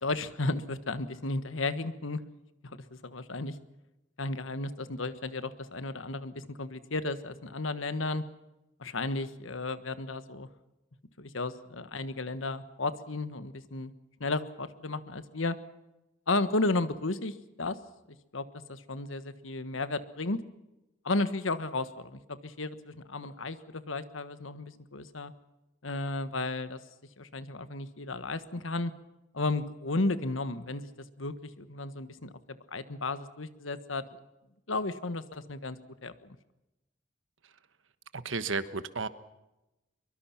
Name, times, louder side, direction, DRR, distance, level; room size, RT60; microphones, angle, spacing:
voice 1, 0.0-2.2 2.7-3.6 4.2-8.2 8.8-10.5 11.2-13.9 14.2-15.6 16.3-17.8 18.3-20.4 21.0-25.3 25.8-26.8 27.2-28.9 29.3-30.9 31.2-34.0 34.7-36.4, left 2 dB, 90° left, 12 dB, 1.4 m, -33 dB
voice 2, 38.1-39.1, right 4 dB, 85° right, 13 dB, 1.3 m, -33 dB
23.5 x 23.5 x 5.9 m, 0.97 s
head